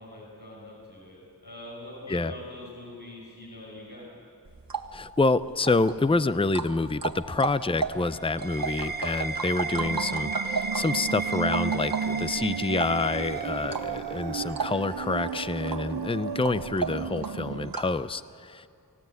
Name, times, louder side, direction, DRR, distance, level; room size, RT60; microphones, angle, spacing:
voice 1, 0.0-4.1, left 1 dB, 70° left, -5 dB, 6.1 m, -43 dB
sound 1, 4.5-18.0, right 4 dB, 60° right, 1.6 m, -36 dB
voice 2, 4.9-18.7, left 3 dB, 15° left, 15 dB, 0.6 m, -27 dB
sound 2, 7.7-14.1, right 4 dB, 25° right, 1.3 m, -35 dB
sound 3, 9.7-17.7, right 7 dB, 85° right, 0.7 m, -34 dB
29.0 x 16.5 x 9.4 m, 2.5 s
wide cardioid pair, 55°, 39 cm